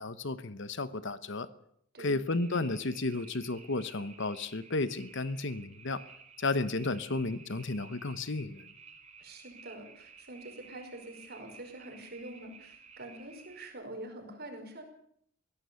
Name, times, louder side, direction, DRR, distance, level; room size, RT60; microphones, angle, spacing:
voice 1, 0.0-1.5 2.0-6.0 6.4-8.6, left 2 dB, 60° left, 13 dB, 1.0 m, -33 dB
sound 1, 2.3-13.7, right 5 dB, 35° right, 3.3 m, -54 dB
voice 2, 9.2-14.8, right 1 dB, 50° right, 5 dB, 5.3 m, -45 dB
22.5 x 17.0 x 7.0 m, 0.69 s
head